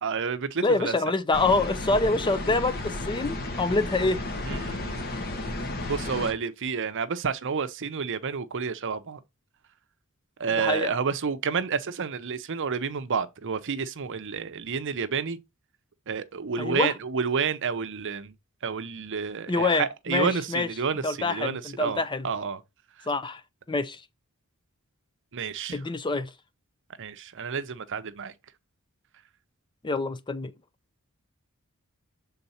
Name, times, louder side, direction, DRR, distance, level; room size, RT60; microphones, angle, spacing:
voice 1, 0.0-1.0 4.5-5.1 5.9-9.2 10.4-15.4 16.1-18.3 18.6-22.6 25.3-25.8 27.0-28.3, right 6 dB, 60° right, 0.7 m, -30 dB
voice 2, 0.6-4.2 10.6-10.9 16.6-16.9 19.5-20.7 21.0-22.3 23.1-23.4 23.7-24.0 25.7-26.3 29.8-30.5, left 3 dB, 20° left, 0.5 m, -26 dB
sound 1, 1.3-6.3, left 2 dB, 45° left, 1.3 m, -33 dB
6.8 x 3.9 x 4.2 m
head